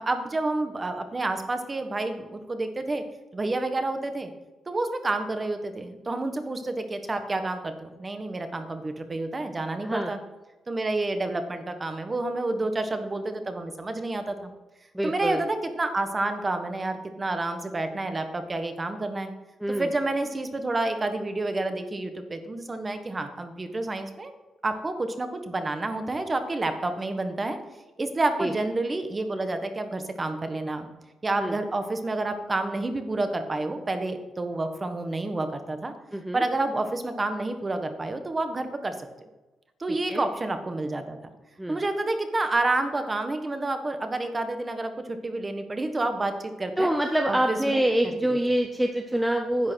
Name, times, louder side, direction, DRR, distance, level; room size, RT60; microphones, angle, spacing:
voice 1, 0.0-3.0 3.3-4.3 4.7-10.2 10.7-14.5 15.0-19.3 19.8-24.3 24.6-27.6 28.0-30.9 31.2-35.9 36.3-39.3 39.8-41.2 41.7-46.9 47.3-47.9, right 2 dB, 25° right, 7 dB, 1.3 m, -29 dB
voice 2, 14.9-15.4 19.6-19.9 28.4-28.5 31.4-31.6 36.1-36.4 40.1-40.2 41.6-41.8 46.8-49.7, right 1 dB, 5° right, 4 dB, 0.7 m, -26 dB
10.5 x 8.4 x 6.3 m, 1.1 s
cardioid pair, 135°, 0 cm